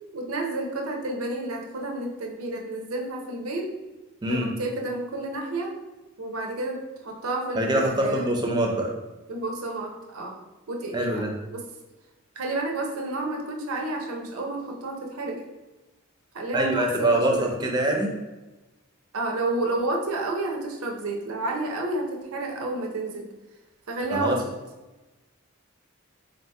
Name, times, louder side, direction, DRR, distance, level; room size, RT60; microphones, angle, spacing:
voice 1, 0.1-3.7 4.3-5.7 6.2-8.3 9.3-10.3 10.7-11.6 12.4-15.4 16.3-17.6 19.1-23.3 23.9-24.4, right 2 dB, 85° right, 1 dB, 0.7 m, -30 dB
voice 2, 7.6-8.9 10.9-11.3 16.5-18.1 24.1-24.4, right 1 dB, 20° right, 1 dB, 0.5 m, -24 dB
3.8 x 2.7 x 3.4 m, 1.1 s
head